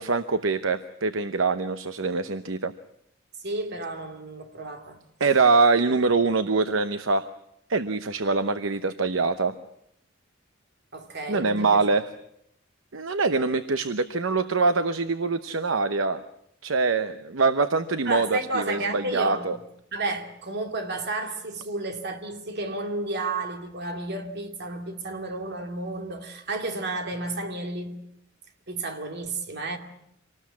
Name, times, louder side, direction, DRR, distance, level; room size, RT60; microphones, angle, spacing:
voice 1, 0.0-2.7 5.2-7.3 7.7-9.5 11.3-12.1 12.9-16.2 16.6-19.6, right 4 dB, 70° right, 0.9 m, -24 dB
voice 2, 3.4-5.0 10.9-11.9 18.0-19.5 19.9-28.0 28.7-29.8, right 2 dB, 55° right, 2.6 m, -32 dB
26.0 x 19.5 x 8.4 m
head